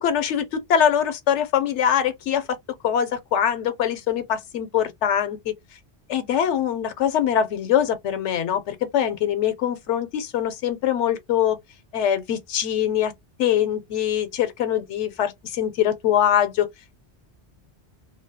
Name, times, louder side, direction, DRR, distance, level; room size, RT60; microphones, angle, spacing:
voice 1, 0.0-2.6 2.8-5.5 6.1-11.6 11.9-13.1 13.4-16.7, left 9 dB, 85° left, 0.9 m, -23 dB
2.3 x 2.1 x 2.6 m
omnidirectional pair, 1.2 m